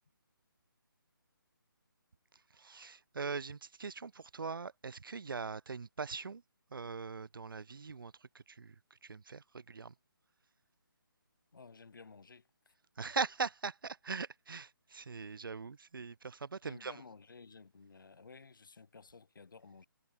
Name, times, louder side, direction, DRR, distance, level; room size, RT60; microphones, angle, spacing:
voice 1, 2.5-6.4 6.7-8.7 9.0-9.9 13.0-17.0, right 5 dB, 70° right, 0.9 m, -41 dB
voice 2, 11.5-12.7 16.6-19.9, left 4 dB, 65° left, 4.3 m, -55 dB
figure-of-eight pair, 160°, 12 cm